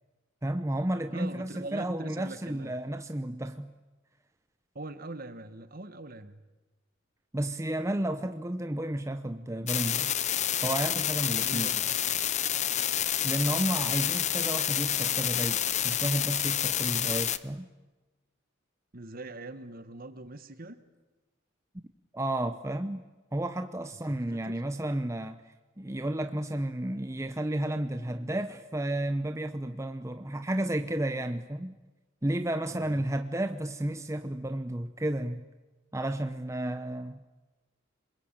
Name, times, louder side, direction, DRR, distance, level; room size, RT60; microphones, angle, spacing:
voice 1, 0.4-3.7 7.3-10.2 10.6-11.7 13.2-17.7 22.1-23.0 23.3-25.4 25.8-31.8 32.2-35.4 35.9-37.2, right 1 dB, 15° right, 0.8 m, -32 dB
voice 2, 1.1-2.8 4.7-6.4 11.4-11.8 18.9-20.8 24.3-24.5 32.7-33.0, right 2 dB, 45° right, 1.6 m, -42 dB
sound 1, 9.7-17.4, left 10 dB, 35° left, 0.8 m, -28 dB
28.0 x 21.5 x 9.1 m
head